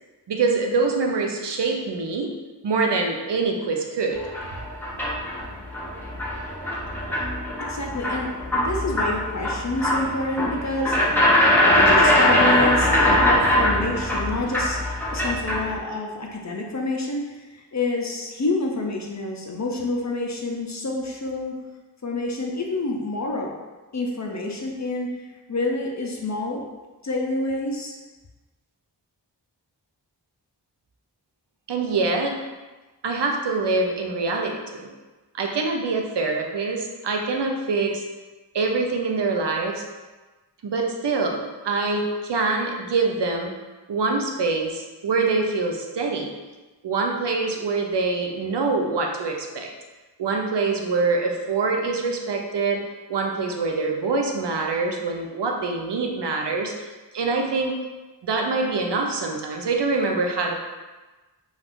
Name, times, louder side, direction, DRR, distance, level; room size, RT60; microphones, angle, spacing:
voice 1, 0.3-2.3 2.6-4.2 31.7-32.4 33.0-34.9 35.3-38.0 38.5-39.8 40.6-41.4 41.6-43.5 43.9-46.3 46.8-49.7 50.2-52.8 53.1-56.9 57.1-57.8 58.2-60.5, right 3 dB, 70° right, 2 dB, 0.5 m, -24 dB
sound 1, 4.1-15.8, left 1 dB, 5° left, 0.7 m, -22 dB
voice 2, 7.6-11.0 11.8-14.8 15.1-21.6 22.0-23.5 23.9-26.6 27.0-28.0, left 2 dB, 40° left, 0 dB, 0.4 m, -28 dB
2.4 x 2.4 x 3.5 m, 1.2 s
wide cardioid pair, 50°, 43 cm